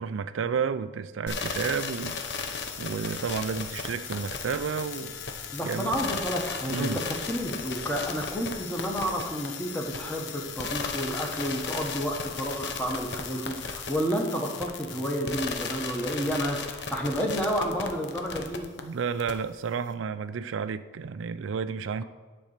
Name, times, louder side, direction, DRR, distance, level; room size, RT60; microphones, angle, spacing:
voice 1, 0.0-5.2 5.6-6.2 6.7-7.0 18.8-22.0, right 6 dB, 85° right, 13 dB, 0.4 m, -31 dB
sound 1, 1.3-18.8 19.2-19.3, left 5 dB, 65° left, 0.8 m, -35 dB
voice 2, 5.5-18.7, equal, 10° left, 0 dB, 1.3 m, -30 dB
10.5 x 4.2 x 6.7 m, 1.3 s
head